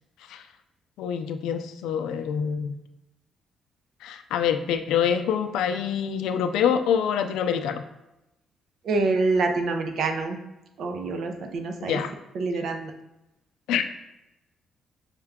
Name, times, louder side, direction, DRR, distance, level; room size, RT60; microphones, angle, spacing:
voice 1, 1.0-2.7 4.0-7.8 11.8-12.1 13.7-13.8, left 8 dB, 90° left, 8 dB, 0.3 m, -26 dB
voice 2, 8.8-10.4 10.8-12.0 12.3-12.9, right 3 dB, 65° right, 6 dB, 0.6 m, -26 dB
5.4 x 2.2 x 3.5 m, 0.92 s
cardioid pair, 90°, 0 cm